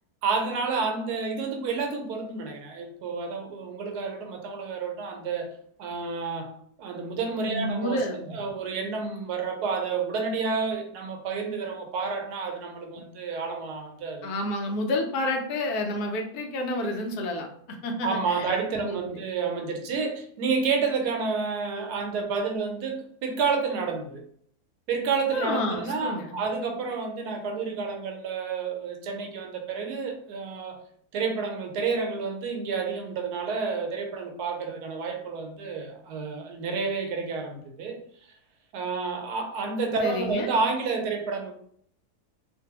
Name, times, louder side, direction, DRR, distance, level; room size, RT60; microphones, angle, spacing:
voice 1, 0.2-5.5 5.8-8.0 8.3-14.3 18.0-24.2 24.9-30.8 31.1-38.0 38.7-41.5, right 4 dB, 80° right, 4 dB, 1.1 m, -30 dB
voice 2, 7.5-8.4 14.2-19.2 25.3-26.4 40.0-40.5, left 1 dB, 75° left, 3 dB, 1.1 m, -30 dB
2.6 x 2.5 x 2.8 m, 0.63 s
omnidirectional pair, 1.7 m